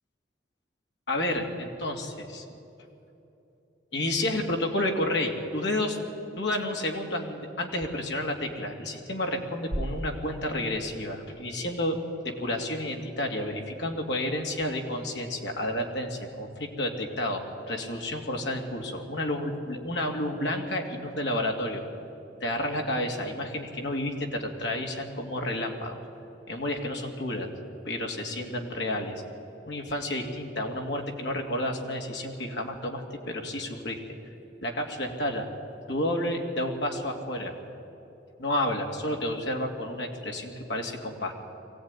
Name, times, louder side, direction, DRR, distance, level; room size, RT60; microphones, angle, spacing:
voice 1, 1.1-2.4 3.9-6.0 6.3-12.0 12.2-21.8 22.4-26.0 26.5-27.5 27.8-29.2 29.7-34.0 34.6-35.5 35.9-37.5 38.4-41.3, left 1 dB, 65° left, 2 dB, 2.7 m, -30 dB
sound 1, 9.7-11.8, right 1 dB, 75° right, 1.3 m, -37 dB
22.5 x 16.5 x 9.8 m, 3.0 s
head